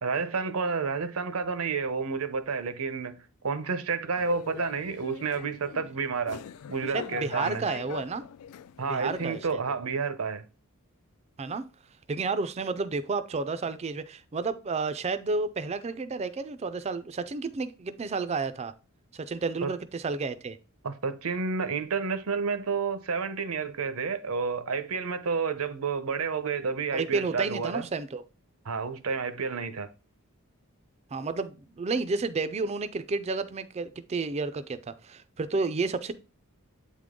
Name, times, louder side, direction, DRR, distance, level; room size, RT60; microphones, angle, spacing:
voice 1, 0.0-3.2 3.4-6.4 6.7-7.7 8.8-10.4 19.6-19.7 20.8-27.9 28.7-29.9, right 5 dB, 75° right, 0.7 m, -30 dB
sound 1, 4.2-9.5, left 8 dB, 85° left, 0.3 m, -41 dB
voice 2, 6.9-8.3 8.9-9.4 11.4-11.6 12.1-18.7 19.1-20.6 26.9-28.2 31.1-36.1, right 4 dB, 30° right, 0.4 m, -31 dB
8.2 x 3.7 x 3.6 m
head